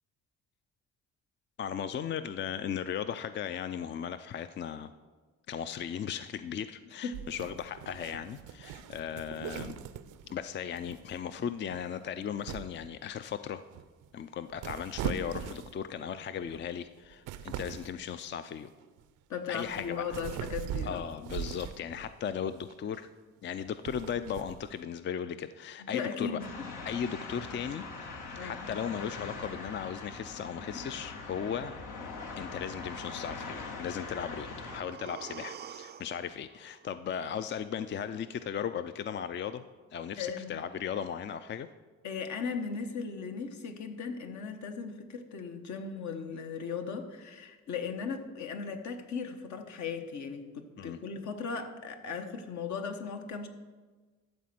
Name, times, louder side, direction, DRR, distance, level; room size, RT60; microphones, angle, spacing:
voice 1, 1.6-4.9 5.5-9.8 10.3-13.6 14.1-18.7 19.5-20.2 20.8-23.1 23.4-26.4 26.9-28.1 28.4-31.7 32.4-39.6 39.9-41.7 50.8-51.0, left 8 dB, 40° left, 12 dB, 0.4 m, -37 dB
sound 1, 7.1-10.4 10.7-11.2 11.6-11.9 12.4-12.9 13.7-14.1 14.5-16.0 16.4-16.6 17.0-18.0 18.8-19.0 19.5-22.1 22.7-23.0 23.6-24.8, right 9 dB, 85° right, 0.6 m, -40 dB
voice 2, 19.3-21.1 25.8-26.5 26.9-27.0 28.4-28.6 40.2-40.6 42.0-53.5, left 5 dB, 70° left, 5 dB, 1.3 m, -37 dB
sound 2, 26.4-34.8, left 3 dB, 85° left, 1.6 m, -42 dB
sound 3, 34.1-38.0 38.3-38.4, right 8 dB, 35° right, 0.4 m, -49 dB
12.5 x 4.3 x 7.6 m, 1.4 s
cardioid pair, 90°, 30 cm